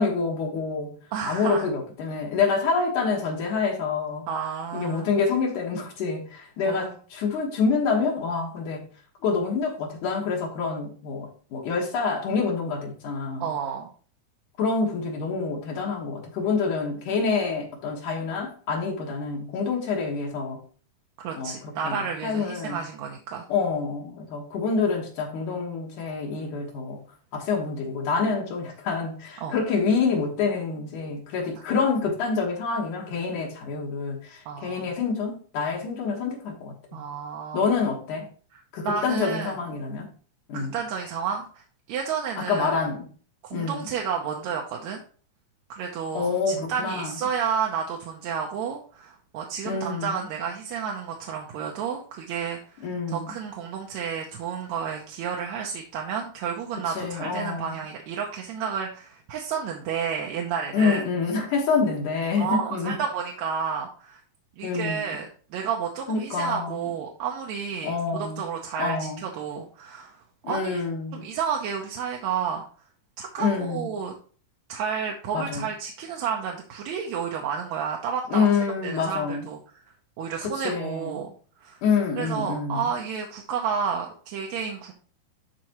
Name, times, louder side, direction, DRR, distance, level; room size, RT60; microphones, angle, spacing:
voice 1, 0.0-1.0 1.3-4.3 4.7-8.9 9.2-13.5 14.6-20.6 21.3-22.0 22.2-22.8 23.5-27.0 27.3-37.0 37.5-38.3 38.7-40.1 40.5-40.8 42.4-43.1 43.5-43.9 46.1-47.1 49.7-50.3 52.8-53.3 57.0-57.8 60.7-63.0 64.6-65.2 66.1-66.9 67.8-68.5 68.8-69.2 70.4-71.3 73.4-74.0 75.3-75.7 78.3-79.4 80.4-81.2 81.8-82.9, left 5 dB, 75° left, 3.0 m, -27 dB
voice 2, 1.1-1.7 4.3-5.1 6.7-6.9 13.4-13.9 21.2-23.5 29.4-29.5 31.6-31.7 34.5-34.8 36.9-37.7 38.5-39.5 40.5-42.7 43.4-45.0 45.7-61.0 62.4-64.2 64.6-70.2 70.5-70.8 71.1-72.6 73.2-74.1 74.7-78.5 78.8-79.6 80.2-81.3 81.6-81.8 82.2-84.9, right 7 dB, 70° right, 2.0 m, -31 dB
12.5 x 4.2 x 3.0 m
omnidirectional pair, 3.6 m